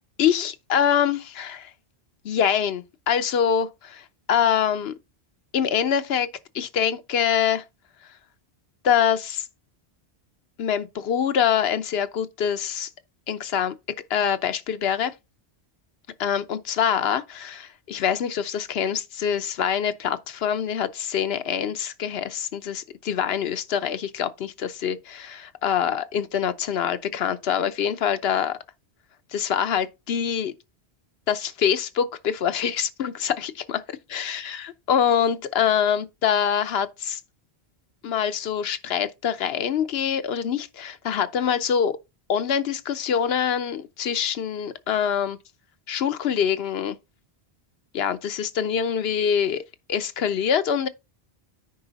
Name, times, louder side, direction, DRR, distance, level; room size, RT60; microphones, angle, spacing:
voice 1, 0.2-1.7 2.2-4.9 5.5-6.3 6.5-7.6 8.8-9.5 10.6-12.9 13.3-13.7 14.1-15.1 16.2-28.6 29.3-30.5 31.3-33.8 34.1-37.2 38.0-42.0 42.3-45.4 45.9-47.0 47.9-49.6 49.9-50.9, left 8 dB, 70° left, 0.9 m, -25 dB
9.5 x 4.8 x 3.9 m
omnidirectional pair, 1.1 m